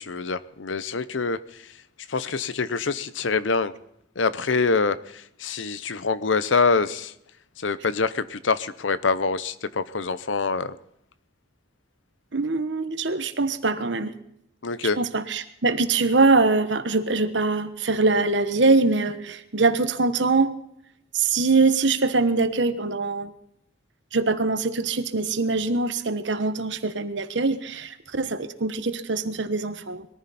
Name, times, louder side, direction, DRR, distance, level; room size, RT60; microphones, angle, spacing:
voice 1, 0.0-1.7 2.1-3.7 4.2-7.1 7.6-10.8 14.6-15.0, left 4 dB, 85° left, 15 dB, 0.8 m, -25 dB
voice 2, 12.3-14.1 15.0-20.5 21.1-23.3 24.1-30.1, right 3 dB, 75° right, 10 dB, 1.2 m, -23 dB
21.5 x 14.0 x 4.2 m, 0.78 s
head